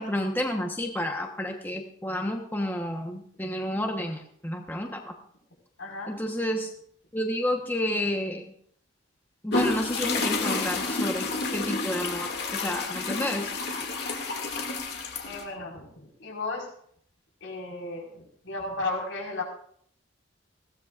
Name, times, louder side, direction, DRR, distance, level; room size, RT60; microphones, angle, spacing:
voice 1, 0.0-5.2 6.1-6.7 7.1-8.5 9.4-13.5, left 1 dB, 10° left, 2 dB, 1.0 m, -30 dB
voice 2, 5.8-6.1 15.2-16.7 17.4-19.4, left 3 dB, 85° left, -1 dB, 4.7 m, -34 dB
sound 1, 9.5-15.4, left 3 dB, 55° left, 2.2 m, -30 dB
20.5 x 16.5 x 2.5 m, 0.63 s
head